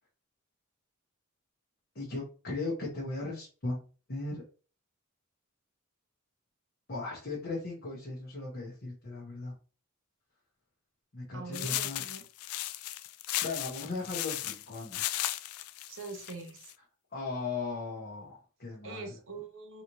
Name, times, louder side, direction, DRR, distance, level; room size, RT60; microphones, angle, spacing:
voice 1, 1.9-4.4 6.9-9.5 11.1-12.0 13.4-15.1 17.1-19.1, left 3 dB, 50° left, -3 dB, 1.0 m, -37 dB
voice 2, 11.3-12.2 15.9-16.7 18.8-19.8, right 3 dB, 65° right, 5 dB, 0.9 m, -43 dB
sound 1, 11.5-16.7, left 14 dB, 80° left, 0.3 m, -36 dB
4.1 x 3.0 x 2.7 m, 0.36 s
head